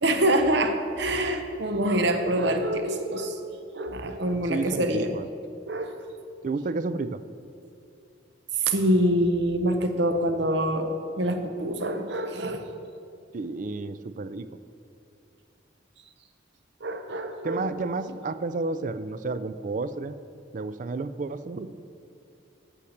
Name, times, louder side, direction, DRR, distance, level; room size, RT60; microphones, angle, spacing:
voice 1, 0.0-3.3 3.7-5.1 5.7-5.9 8.7-12.6 16.8-17.7, right 1 dB, 65° right, 6 dB, 0.8 m, -25 dB
voice 2, 4.5-5.3 6.4-7.2 13.3-14.5 17.4-20.2 20.5-21.8, right 3 dB, 40° right, 13 dB, 0.3 m, -31 dB
8.6 x 6.6 x 6.4 m, 2.5 s
head